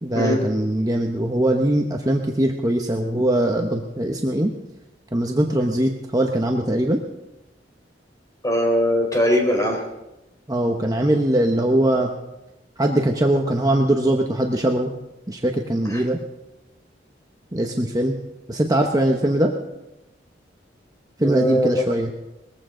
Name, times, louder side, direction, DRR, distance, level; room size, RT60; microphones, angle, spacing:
voice 1, 0.0-4.5 5.1-7.0 10.5-12.1 12.8-14.9 15.3-16.2 17.5-18.2 18.5-19.5 21.2-22.1, right 1 dB, 20° right, 2 dB, 1.0 m, -21 dB
voice 2, 8.4-9.8 15.9-16.0 21.2-21.8, equal, 20° left, 1 dB, 4.1 m, -20 dB
21.0 x 15.0 x 3.8 m, 0.97 s
head